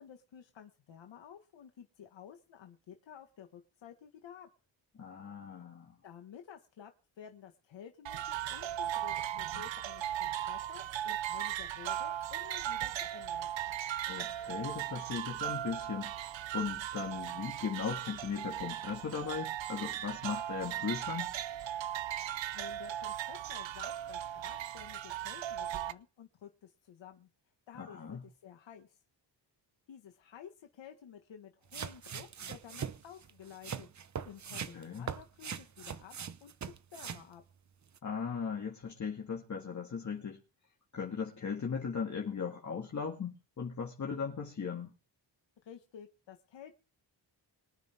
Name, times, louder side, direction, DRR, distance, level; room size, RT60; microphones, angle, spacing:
voice 1, 0.0-4.5 6.0-6.9 7.2-13.5 22.5-27.3 27.7-29.0 29.9-33.9 34.2-36.1 36.4-36.5 36.9-37.4 45.6-46.7, left 8 dB, 80° left, 1.8 m, -52 dB
voice 2, 5.0-6.0 14.1-21.3 27.8-28.2 34.7-35.1 38.0-40.4 40.9-44.9, left 6 dB, 40° left, 2.1 m, -38 dB
sound 1, 8.1-25.9, right 11 dB, 80° right, 0.9 m, -37 dB
sound 2, 31.7-37.3 37.9-38.0, right 7 dB, 40° right, 0.9 m, -41 dB
25.0 x 9.4 x 3.6 m
wide cardioid pair, 130°, 44 cm